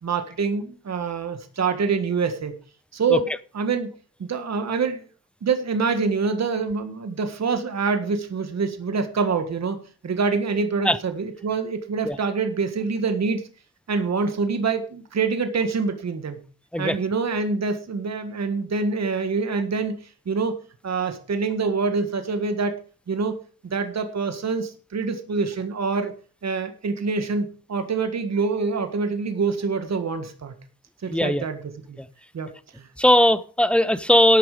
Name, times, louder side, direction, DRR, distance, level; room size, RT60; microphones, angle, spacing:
voice 1, 0.0-2.5 2.9-3.3 3.5-3.9 4.2-5.1 5.4-9.8 10.0-13.4 13.9-16.4 16.8-20.0 20.2-20.6 20.8-22.8 23.1-23.3 23.6-26.1 26.4-30.5 31.0-31.6 31.9-32.0 32.3-32.9, right 4 dB, 45° right, 8 dB, 1.7 m, -25 dB
voice 2, 31.1-31.4 32.0-32.1 33.0-34.4, left 1 dB, 5° left, 16 dB, 0.6 m, -18 dB
12.5 x 8.9 x 4.9 m, 0.39 s
wide cardioid pair, 125°, 36 cm